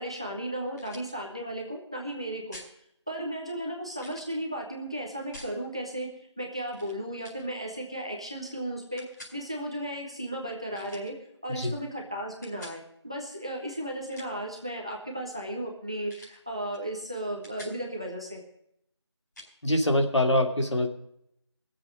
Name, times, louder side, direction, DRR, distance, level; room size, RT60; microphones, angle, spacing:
voice 1, 0.0-2.6 3.1-6.1 6.4-9.0 9.3-11.1 11.4-18.4, right 1 dB, 10° right, 0 dB, 0.7 m, -35 dB
sound 1, 0.8-1.1 2.5-2.7 4.0-4.4 5.3-5.6 6.7-6.9 7.2-7.4 9.0-9.4 10.7-11.1 12.4-12.8 13.9-14.5 16.1-16.4 16.7-16.9 17.2-17.8 19.3-19.5, left 1 dB, 40° left, 4.9 m, -47 dB
voice 2, 19.6-20.9, left 1 dB, 75° left, 3 dB, 2.6 m, -24 dB
19.5 x 7.4 x 6.3 m, 0.75 s
figure-of-eight pair, 175°, 15 cm